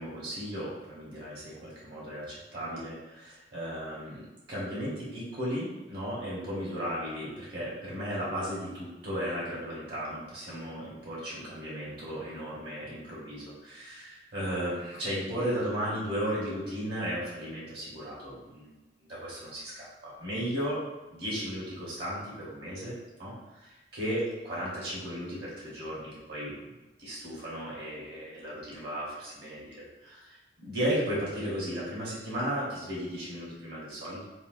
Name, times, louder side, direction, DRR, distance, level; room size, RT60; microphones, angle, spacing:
voice 1, 0.0-20.8 21.1-22.9 23.2-26.5 27.0-34.2, equal, 65° right, -7 dB, 1.1 m, -35 dB
4.1 x 2.1 x 2.5 m, 1.1 s
head